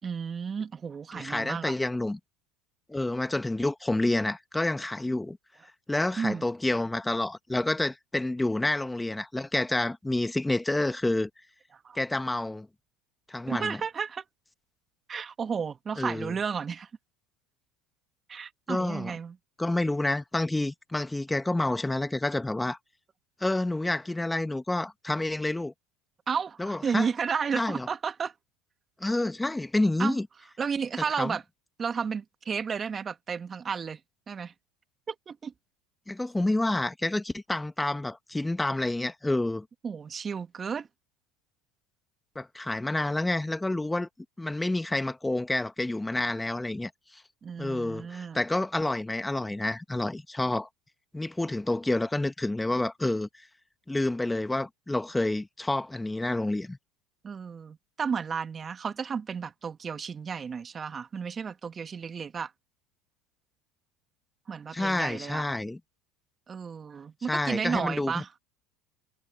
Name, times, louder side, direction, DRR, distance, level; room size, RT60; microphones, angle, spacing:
voice 1, 0.0-1.7 6.2-6.5 11.8-12.0 13.5-14.2 15.1-16.9 18.3-19.4 26.3-28.3 30.0-30.1 30.6-31.4 31.8-34.0 34.3-34.5 35.1-35.5 39.8-40.9 47.4-48.4 57.2-62.5 64.5-65.4 66.5-68.3, right 6 dB, 30° right, 2.2 m, -32 dB
voice 2, 1.1-2.2 2.9-5.4 5.9-11.3 11.9-12.7 13.3-13.8 16.0-16.3 18.7-19.2 19.6-22.8 23.4-25.7 26.6-27.1 27.5-27.9 29.0-30.2 31.2-31.4 36.1-39.6 42.3-44.1 44.4-47.2 47.6-50.7 51.1-53.5 53.9-56.8 64.7-65.8 67.3-68.2, left 2 dB, 10° left, 1.8 m, -29 dB
hypercardioid pair, 85°, 0 cm